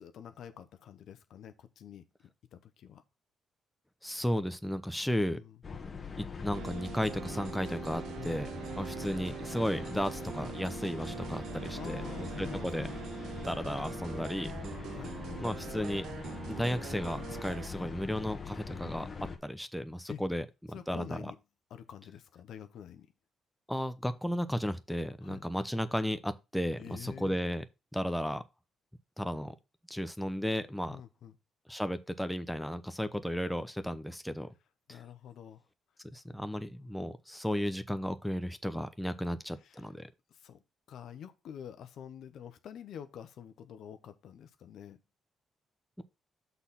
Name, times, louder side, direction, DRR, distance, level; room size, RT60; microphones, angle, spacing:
voice 1, 0.0-3.0 5.1-5.6 8.2-8.5 11.7-12.9 14.9-15.2 20.1-20.2 20.7-21.4 21.7-23.1 25.2-25.5 26.8-27.4 30.9-31.3 34.9-35.6 39.6-39.8 40.3-40.6 40.9-45.0, left 9 dB, 70° left, 0.9 m, -47 dB
voice 2, 4.0-5.4 6.2-8.5 8.8-12.9 13.4-14.5 15.4-16.1 16.5-19.1 19.4-21.3 23.7-27.6 27.9-28.4 29.2-29.5 29.9-31.0 31.7-34.5 34.9-35.0 36.1-40.1, equal, 5° left, 0.7 m, -34 dB
sound 1, 5.6-19.4, left 5 dB, 40° left, 1.3 m, -42 dB
sound 2, 6.5-17.7, right 10 dB, 80° right, 0.5 m, -43 dB
6.3 x 4.1 x 5.7 m
cardioid pair, 90°, 0 cm